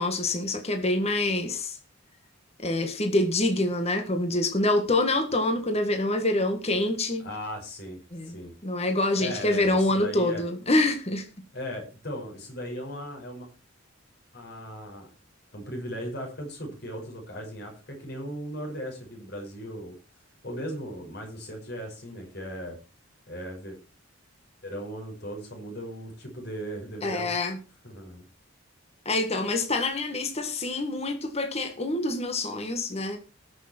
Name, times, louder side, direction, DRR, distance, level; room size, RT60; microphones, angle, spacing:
voice 1, 0.0-1.8 2.6-7.2 8.1-11.3 27.0-27.6 29.1-33.2, left 2 dB, 30° left, 6 dB, 1.8 m, -26 dB
voice 2, 7.2-8.0 8.3-8.5 9.2-10.4 11.5-13.5 14.3-15.1 15.5-20.0 20.4-22.8 23.3-23.8 24.6-27.3 27.8-28.2, equal, 50° left, 1 dB, 5.9 m, -37 dB
20.0 x 6.6 x 4.4 m, 0.31 s
head